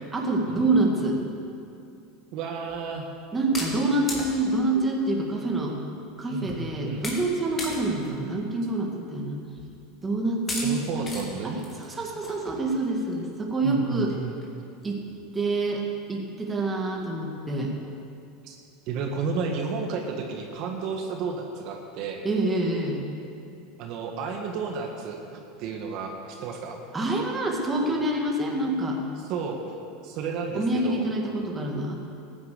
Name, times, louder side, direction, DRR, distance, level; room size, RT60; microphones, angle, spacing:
voice 1, 0.1-1.2 3.3-5.8 6.2-9.4 10.0-11.6 11.9-14.1 14.8-15.0 15.3-17.7 22.2-23.0 26.9-29.0 30.5-32.0, right 2 dB, 15° right, 0 dB, 2.0 m, -26 dB
voice 2, 2.3-3.1 6.3-7.0 10.6-11.6 13.6-14.4 18.4-18.6 18.9-22.2 23.8-26.8 29.2-29.8 30.0-31.1, right 5 dB, 55° right, 2 dB, 1.6 m, -32 dB
sound 1, 2.7-2.8 3.5-4.7 5.5-5.6 6.0-6.1 6.5-6.7 7.0-7.3 7.6-8.1 8.6-8.7 9.6-9.7 10.5-10.7 11.1-11.2 11.6-13.1 13.6-13.7 14.1-14.2 14.4-14.5 14.8-15.1, left 2 dB, 25° left, 2.8 m, -36 dB
14.5 x 9.6 x 6.7 m, 2.6 s
supercardioid pair, 125°, 0 cm